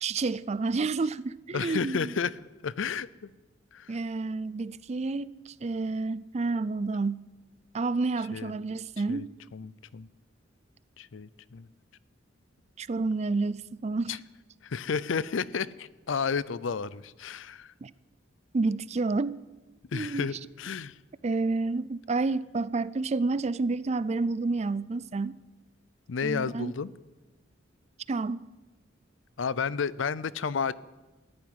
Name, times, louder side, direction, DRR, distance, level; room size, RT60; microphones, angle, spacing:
voice 1, 0.0-2.1 3.9-7.3 7.7-9.3 12.8-14.2 17.8-17.9 18.5-19.4 19.9-20.3 21.2-25.4 26.2-26.7 28.1-28.5, right 3 dB, 35° right, 0.4 m, -29 dB
voice 2, 1.5-2.3 2.6-3.1 3.7-4.0 8.3-8.5 9.1-9.3 9.5-10.1 11.0-11.7 14.1-14.2 14.6-17.7 19.9-21.0 26.1-26.9 29.4-30.7, left 6 dB, 75° left, 0.5 m, -31 dB
14.0 x 11.0 x 9.5 m
head